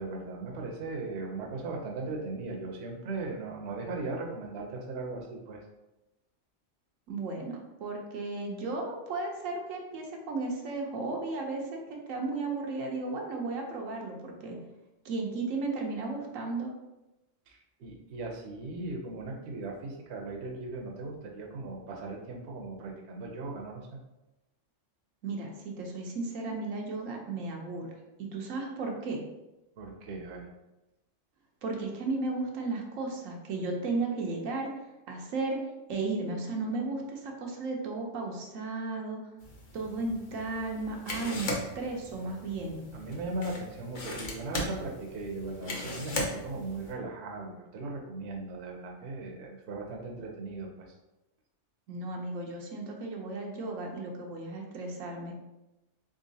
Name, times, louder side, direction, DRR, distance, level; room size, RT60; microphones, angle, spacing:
voice 1, 0.0-5.6 17.5-24.0 29.8-30.5 42.9-50.9, right 3 dB, 65° right, 0 dB, 0.9 m, -38 dB
voice 2, 7.1-14.6 15.0-16.7 25.2-27.9 28.3-29.2 31.6-34.7 35.1-35.6 35.9-39.2 39.7-42.9 51.9-55.3, right 3 dB, 85° right, 1 dB, 1.1 m, -34 dB
sound 1, 39.4-46.9, left 1 dB, 45° left, 0.8 m, -38 dB
3.7 x 3.7 x 2.7 m, 0.98 s
omnidirectional pair, 1.3 m